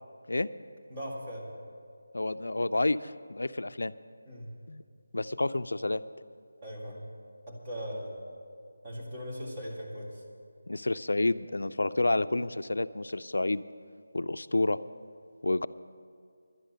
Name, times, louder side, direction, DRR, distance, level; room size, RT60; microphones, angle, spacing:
voice 1, 0.9-1.5 4.3-4.5 6.6-7.0 7.5-8.2 8.8-10.2, equal, 25° right, -2 dB, 2.1 m, -39 dB
voice 2, 2.1-3.9 4.7-4.8 5.1-6.0 10.7-13.6 14.1-14.8 15.4-15.7, left 2 dB, 80° left, 13 dB, 0.4 m, -29 dB
11.0 x 10.0 x 6.6 m, 2.3 s
figure-of-eight pair, 170°, 0 cm